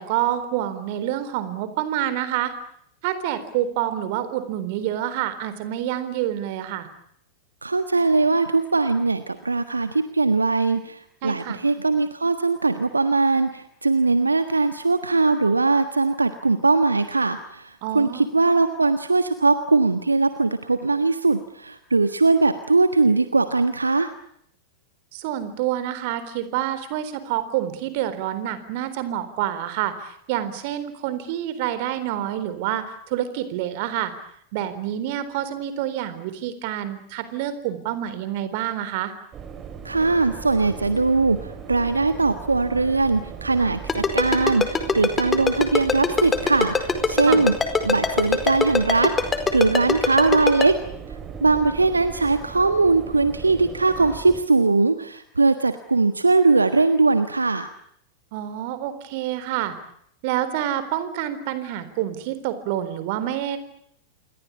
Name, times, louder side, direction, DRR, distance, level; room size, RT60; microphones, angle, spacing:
voice 1, 0.0-2.5 3.0-6.9 11.2-11.6 17.8-18.3 25.1-34.1 34.5-39.1 47.3-47.5 58.3-59.7 60.2-63.6, right 12 dB, 50° right, 13 dB, 4.0 m, -27 dB
voice 2, 7.6-24.1 39.8-47.5 47.8-50.8 51.4-57.7, right 3 dB, 80° right, 11 dB, 1.4 m, -20 dB
sound 1, 39.3-54.4, right 6 dB, 25° right, 4.5 m, -38 dB
Ringtone, 43.9-50.7, left 5 dB, 15° left, 4.7 m, -21 dB
28.5 x 23.0 x 8.4 m, 0.70 s
figure-of-eight pair, 90°, 0 cm